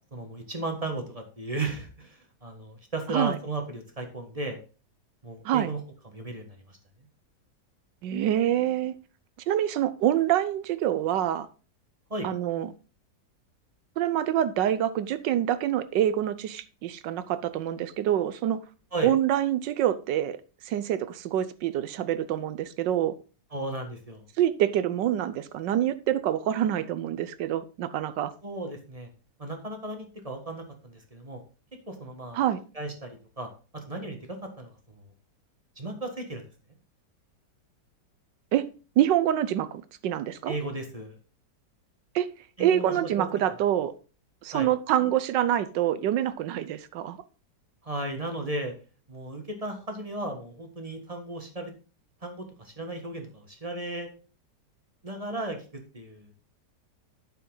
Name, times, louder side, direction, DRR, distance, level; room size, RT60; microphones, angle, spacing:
voice 1, 0.1-4.6 5.2-5.8 6.1-6.8 12.1-12.3 18.9-19.1 23.5-24.2 28.4-29.1 29.4-31.4 31.9-32.4 32.7-35.0 35.8-36.4 40.5-41.2 42.6-43.3 44.5-44.7 47.8-48.7 49.1-51.7 52.2-54.1 55.0-55.6 55.9-56.3, right 2 dB, 20° right, 1.3 m, -35 dB
voice 2, 8.0-8.9 9.5-11.5 12.2-12.7 14.0-18.6 19.0-20.4 20.6-23.1 24.4-28.3 32.3-32.6 38.5-38.7 39.0-40.5 42.1-42.3 42.6-43.9 44.4-47.2, right 11 dB, 80° right, 1.4 m, -26 dB
9.2 x 6.9 x 3.8 m
omnidirectional pair, 1.9 m